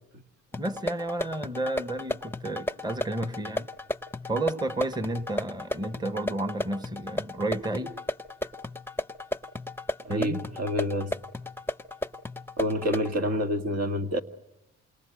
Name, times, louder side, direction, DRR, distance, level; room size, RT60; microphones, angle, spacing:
sound 1, 0.5-13.1, left 1 dB, 5° left, 0.9 m, -35 dB
voice 1, 0.6-3.7 4.2-7.9 10.1-10.4, right 2 dB, 15° right, 1.4 m, -31 dB
voice 2, 10.0-11.1 12.6-14.2, equal, 55° right, 2.1 m, -28 dB
29.0 x 27.5 x 6.5 m
cardioid pair, 90°, 30 cm